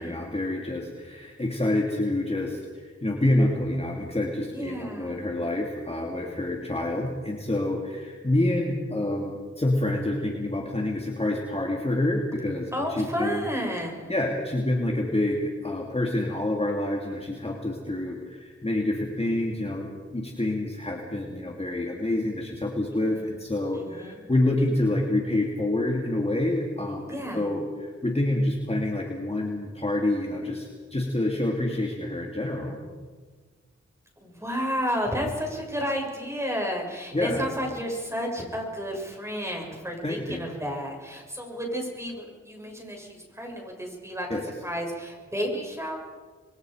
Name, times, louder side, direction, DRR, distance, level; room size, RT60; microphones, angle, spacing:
voice 1, 0.0-13.5 14.1-32.8 37.1-37.5 40.0-40.4 44.3-44.4, left 1 dB, 20° left, -1 dB, 3.0 m, -27 dB
voice 2, 4.5-5.3 12.7-14.2 22.9-23.4 23.7-24.2 27.1-27.5 34.2-46.0, equal, 10° right, 0 dB, 6.9 m, -32 dB
27.5 x 22.0 x 5.2 m, 1.5 s
wide cardioid pair, 80°, 29 cm